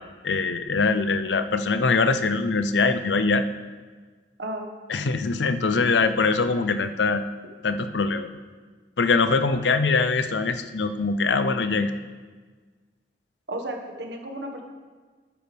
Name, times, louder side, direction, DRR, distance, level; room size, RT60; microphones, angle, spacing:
voice 1, 0.2-3.4 4.9-7.2 7.6-8.3 9.0-11.9, left 4 dB, 80° left, 10 dB, 0.6 m, -23 dB
voice 2, 13.5-14.6, right 1 dB, 80° right, 3 dB, 1.6 m, -33 dB
13.0 x 9.5 x 3.5 m, 1.4 s
head